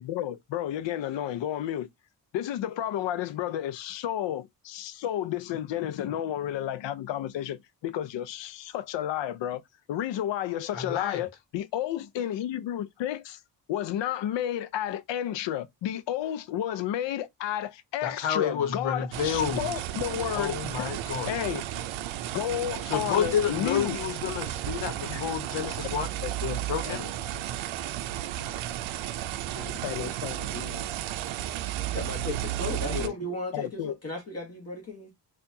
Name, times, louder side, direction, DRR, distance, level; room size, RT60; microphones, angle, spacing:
voice 1, 0.0-1.9 2.3-9.6 9.9-13.4 13.7-20.9 21.3-21.6 22.3-24.0 25.1-25.7 26.2-27.4 29.6-30.9 32.2-32.3 32.9-33.1 33.5-34.0, left 11 dB, 65° left, 0.6 m, -32 dB
voice 2, 10.7-11.2 18.0-19.6 20.3-21.3 22.8-26.2 26.4-27.1, left 8 dB, 90° left, 1.1 m, -30 dB
sound 1, 19.1-33.1, right 13 dB, 80° right, 0.6 m, -33 dB
voice 3, 31.9-35.1, left 2 dB, 30° left, 1.2 m, -35 dB
4.4 x 2.5 x 2.6 m
cardioid pair, 100°, 46 cm